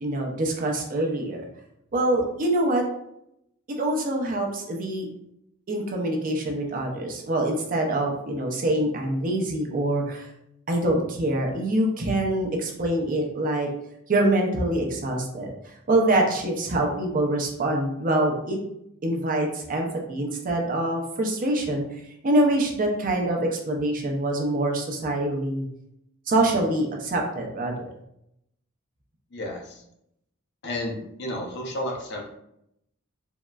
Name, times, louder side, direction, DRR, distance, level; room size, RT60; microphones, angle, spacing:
voice 1, 0.0-1.4 1.9-2.8 3.8-5.1 5.7-10.3 10.7-13.7 14.1-18.6 19.0-21.8 22.2-25.7 26.3-27.9, right 1 dB, 40° right, 0 dB, 0.5 m, -25 dB
voice 2, 29.3-29.8 30.6-32.3, left 1 dB, 55° left, 1 dB, 0.5 m, -32 dB
3.6 x 2.0 x 2.2 m, 0.78 s
head